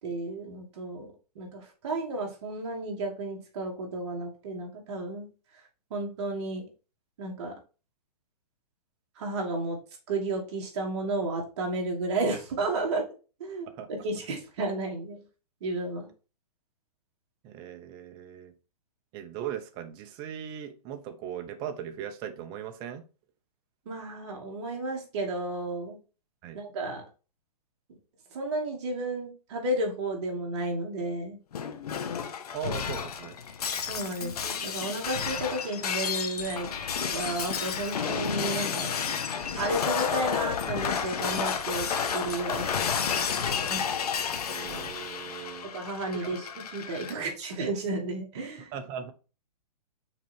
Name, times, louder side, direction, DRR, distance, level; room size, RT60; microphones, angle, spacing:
voice 1, 0.0-1.1 1.4-5.3 5.9-6.6 7.2-7.5 9.2-9.8 10.1-13.0 13.4-15.2 15.6-16.1 23.9-26.0 26.5-27.0 28.3-31.4 33.9-36.7 37.0-39.0 39.6-41.9 42.1-43.1 43.4-43.9 45.7-48.7, right 2 dB, 45° right, 2.4 m, -32 dB
voice 2, 17.4-18.5 19.1-23.0 26.4-26.6 32.5-33.4 44.5-45.7 46.2-46.3 47.1-47.3 48.7-49.1, right 9 dB, 20° right, 0.8 m, -38 dB
Shatter, 31.5-47.1, left 7 dB, 70° left, 1.3 m, -31 dB
6.0 x 4.4 x 4.5 m
hypercardioid pair, 160°, 20 cm